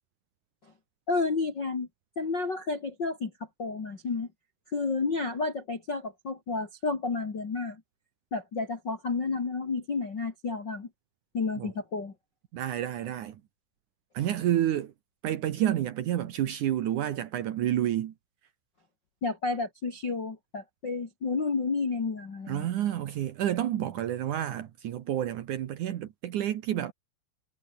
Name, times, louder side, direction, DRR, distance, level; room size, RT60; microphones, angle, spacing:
voice 1, 1.1-1.9 2.2-3.3 3.6-4.3 4.7-7.8 8.3-10.9 11.3-12.1 19.2-22.7, left 4 dB, 35° left, 1.9 m, -31 dB
voice 2, 12.5-13.4 14.1-14.9 15.2-18.1 22.5-26.9, right 11 dB, 90° right, 1.7 m, -29 dB
omnidirectional pair, 5.6 m